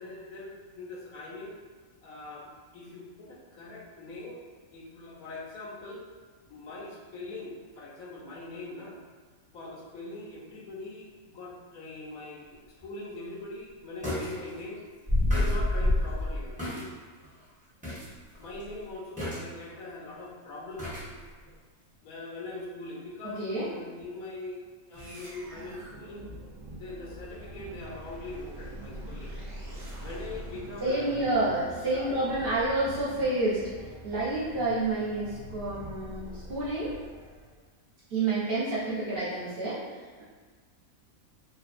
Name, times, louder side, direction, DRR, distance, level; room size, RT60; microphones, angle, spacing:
voice 1, 0.0-1.6 2.0-4.4 4.7-6.1 6.5-9.0 9.5-14.8 15.3-16.9 18.4-21.2 22.0-26.3 26.7-29.4 30.0-31.4 31.8-32.1, left 2 dB, 80° left, -4 dB, 1.1 m, -42 dB
sound 1, 12.8-12.9 14.0-14.4 14.6-14.7 15.1-16.8 17.2-17.3 17.8-18.1 18.3-18.6 19.2-19.7 20.8-21.1 21.5-21.6, left 1 dB, 5° right, 0.7 m, -28 dB
voice 2, 23.4-23.7 30.8-33.6 34.0-36.9 38.1-39.8, right 2 dB, 50° right, -9 dB, 0.9 m, -29 dB
sound 2, 24.9-37.6, right 1 dB, 65° right, 0.4 m, -44 dB
2.8 x 2.3 x 2.4 m, 1.4 s
omnidirectional pair, 1.5 m